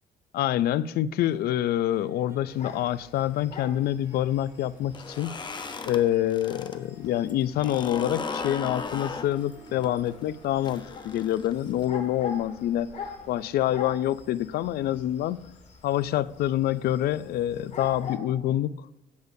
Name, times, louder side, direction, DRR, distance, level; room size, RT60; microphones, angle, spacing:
voice 1, 0.3-5.4 5.9-12.9 13.3-15.5 15.8-18.8, left 12 dB, 65° left, 0.5 m, -26 dB
Harp, 1.3-12.4, right 3 dB, 15° right, 1.6 m, -55 dB
sound 1, 2.5-18.2, left 5 dB, 45° left, 1.9 m, -44 dB
sound 2, 4.8-6.8 7.1-11.8, left 4 dB, 25° left, 0.8 m, -37 dB
24.0 x 8.0 x 2.7 m
cardioid pair, 110°, 17 cm